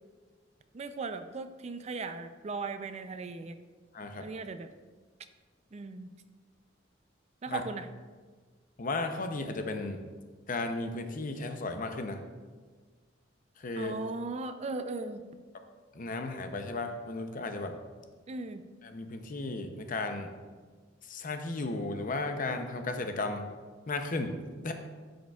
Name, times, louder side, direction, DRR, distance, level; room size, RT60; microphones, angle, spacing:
voice 1, 0.7-3.6 4.2-4.7 5.7-6.1 7.4-7.9 13.8-15.2 18.3-18.7, right 3 dB, 35° right, 9 dB, 0.4 m, -37 dB
voice 2, 3.9-4.3 7.5-7.6 8.8-10.0 10.5-12.2 13.6-13.9 15.9-17.8 18.8-20.4 21.0-23.5 23.9-24.7, left 2 dB, 45° left, 6 dB, 0.6 m, -35 dB
10.5 x 6.5 x 2.3 m, 1.5 s
head